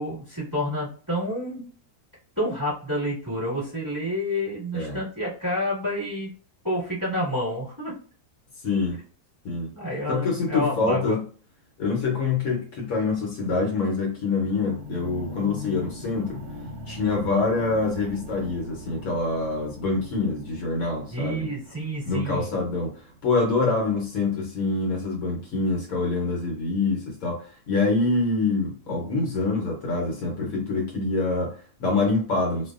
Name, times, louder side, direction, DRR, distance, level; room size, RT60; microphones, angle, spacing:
voice 1, 0.0-1.6 2.4-6.3 6.6-7.9 9.7-11.2 21.1-22.5, equal, 15° right, -9 dB, 1.2 m, -29 dB
voice 2, 8.6-9.0 9.4-9.7 10.1-11.2 11.8-16.4 16.9-21.5 22.0-32.7, left 3 dB, 70° left, -1 dB, 1.1 m, -25 dB
sound 1, 14.3-24.4 25.1-25.2, left 1 dB, 75° right, 1.1 m, -41 dB
2.6 x 2.2 x 2.3 m, 0.43 s
omnidirectional pair, 1.7 m